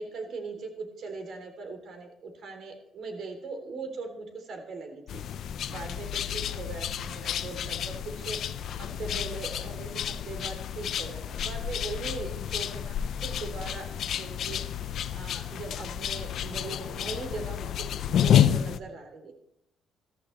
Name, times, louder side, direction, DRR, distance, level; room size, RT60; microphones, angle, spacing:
voice 1, 0.0-8.4 8.8-13.0 13.2-17.9 18.2-19.3, right 3 dB, 70° right, 4 dB, 3.2 m, -40 dB
sound 1, 5.1-18.8, left 10 dB, 70° left, 0.6 m, -30 dB
14.5 x 14.5 x 3.3 m, 0.79 s
cardioid pair, 90°, 0 cm